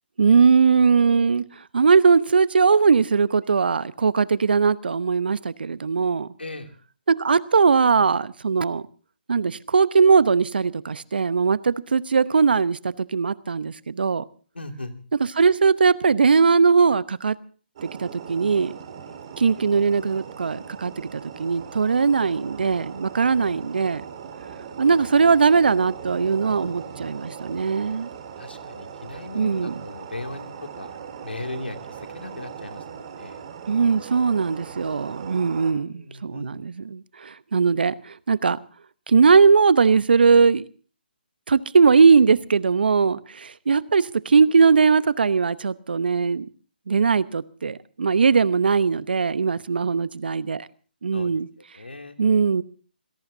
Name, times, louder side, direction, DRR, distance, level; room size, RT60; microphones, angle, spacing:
voice 1, 0.2-1.4 1.7-6.3 7.1-8.9 9.3-14.2 15.3-17.4 17.8-18.7 19.4-24.0 24.8-28.1 29.3-29.7 33.7-38.6 39.1-40.7 41.5-46.5 46.9-50.7 51.0-51.5 52.2-52.6, right 5 dB, 65° right, 0.9 m, -20 dB
voice 2, 6.4-6.7 14.5-14.9 24.8-25.0 28.4-33.4 35.6-36.5 51.1-51.3 51.7-52.2, left 2 dB, 85° left, 2.7 m, -38 dB
sound 1, 17.7-35.7, right 7 dB, 40° right, 4.3 m, -39 dB
26.5 x 17.5 x 2.7 m
figure-of-eight pair, 145°, 6 cm